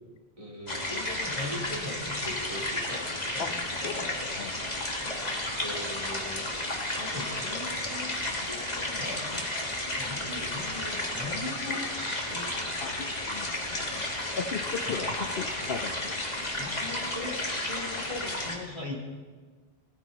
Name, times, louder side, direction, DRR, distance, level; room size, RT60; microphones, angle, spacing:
voice 1, 0.4-3.0 3.3-4.2 5.0-5.3 5.6-6.5 6.9-9.3 10.0-12.5 14.9-15.1 16.5-19.0, left 2 dB, 30° right, -3 dB, 3.5 m, -39 dB
sound 1, 0.7-18.6, left 1 dB, 40° left, 2.1 m, -33 dB
voice 2, 3.8-4.7 9.3-9.5 12.8-14.1 14.4-16.2, left 6 dB, 65° left, 8 dB, 1.0 m, -37 dB
19.0 x 14.5 x 4.1 m, 1.4 s
omnidirectional pair, 1.1 m